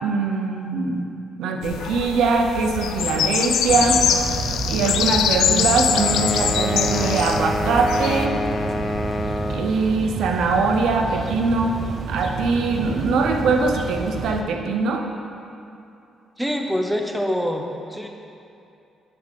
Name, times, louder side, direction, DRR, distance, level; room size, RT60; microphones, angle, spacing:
voice 1, 0.0-1.1 1.4-4.0 4.7-8.4 9.5-11.7 12.1-15.0, right 4 dB, 80° right, 3 dB, 0.8 m, -22 dB
sound 1, 1.6-8.3, left 8 dB, 80° left, 0.4 m, -24 dB
sound 2, 3.7-14.4, right 5 dB, 50° right, 0.5 m, -30 dB
sound 3, 5.9-9.8, left 2 dB, 25° left, 0.6 m, -27 dB
voice 2, 16.4-18.1, equal, 5° right, 2 dB, 0.8 m, -25 dB
8.7 x 3.7 x 6.7 m, 2.7 s
cardioid pair, 90°, 0 cm